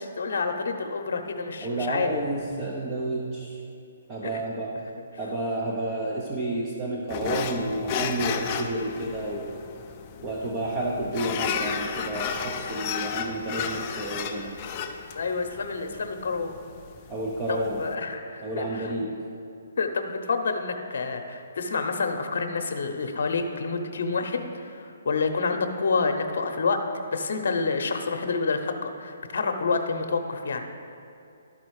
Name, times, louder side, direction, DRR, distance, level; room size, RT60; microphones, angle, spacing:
voice 1, 0.0-2.1 15.1-16.6 17.5-18.9 19.8-26.8 27.1-30.7, left 4 dB, 65° left, 6 dB, 0.8 m, -28 dB
voice 2, 1.6-3.6 4.1-4.9 5.2-9.6 10.2-14.6 17.1-17.9 18.4-19.2, right 1 dB, 20° right, -3 dB, 0.7 m, -30 dB
sound 1, 7.1-17.9, left 7 dB, 30° left, 0.4 m, -33 dB
12.0 x 4.1 x 4.8 m, 2.6 s
hypercardioid pair, 155°, 0 cm